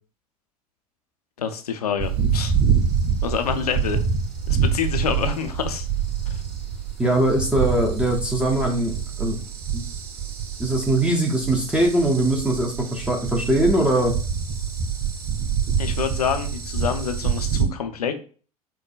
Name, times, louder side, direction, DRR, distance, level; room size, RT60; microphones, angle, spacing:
voice 1, 1.4-2.5 3.2-4.0 4.5-5.9 6.3-6.4 15.8-18.2, left 7 dB, 75° left, 7 dB, 0.5 m, -27 dB
sound 1, 2.0-17.6, right 7 dB, 45° right, 1.5 m, -26 dB
voice 2, 7.0-9.4 9.7-9.9 10.6-14.1, right 1 dB, 5° right, 0 dB, 0.6 m, -21 dB
4.6 x 2.1 x 2.4 m, 0.41 s
figure-of-eight pair, 80°, 20 cm